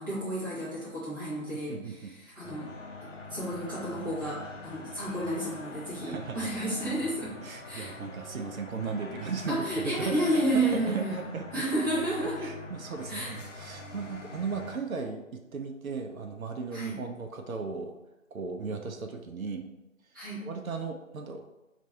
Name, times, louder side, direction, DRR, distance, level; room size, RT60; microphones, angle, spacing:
voice 1, 0.0-2.7 3.3-7.3 7.6-7.9 9.5-11.3 11.5-12.5 13.1-13.3 16.7-17.0 20.1-20.4, right 1 dB, 15° right, -11 dB, 0.9 m, -31 dB
voice 2, 1.5-2.1 6.0-6.5 7.4-11.6 12.2-18.0 18.3-19.6 20.4-21.4, right 5 dB, 80° right, 4 dB, 0.6 m, -36 dB
sound 1, 2.4-14.8, left 2 dB, 60° left, 0.7 m, -44 dB
2.6 x 2.6 x 4.2 m, 0.98 s
figure-of-eight pair, 160°, 41 cm